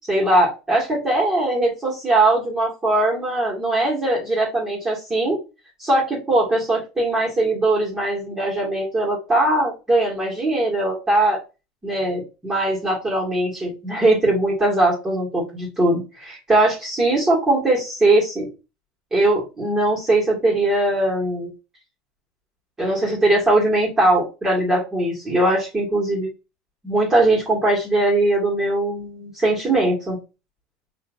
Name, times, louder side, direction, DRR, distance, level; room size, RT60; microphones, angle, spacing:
voice 1, 0.1-5.4 5.8-11.4 11.8-18.5 19.1-21.5 22.8-26.3 26.8-30.2, right 2 dB, 15° right, -6 dB, 2.0 m, -20 dB
4.5 x 3.1 x 2.6 m, 0.28 s
supercardioid pair, 100°, 3 cm